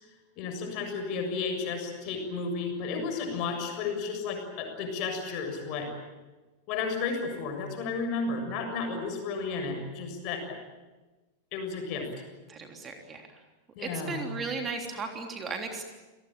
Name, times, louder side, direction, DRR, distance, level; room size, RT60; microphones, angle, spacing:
voice 1, 0.4-5.9 6.7-10.6 11.5-12.1 13.8-14.2, left 4 dB, 40° left, 5 dB, 7.0 m, -33 dB
voice 2, 12.5-13.3 13.8-15.8, right 4 dB, 20° right, 3 dB, 3.5 m, -36 dB
29.0 x 19.0 x 9.1 m, 1.2 s
figure-of-eight pair, 90°, 0 cm